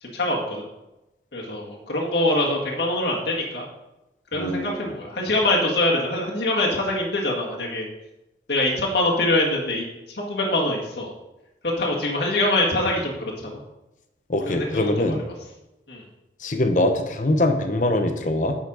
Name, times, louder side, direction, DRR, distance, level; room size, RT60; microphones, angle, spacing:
voice 1, 0.0-0.6 1.3-3.6 4.3-7.9 8.5-11.1 11.8-13.6 14.5-15.2 15.9-16.0, left 1 dB, 75° left, -3 dB, 1.7 m, -24 dB
voice 2, 4.3-4.8 14.3-15.2 16.4-18.6, left 1 dB, 45° left, 6 dB, 0.8 m, -23 dB
8.8 x 5.7 x 4.9 m, 0.97 s
head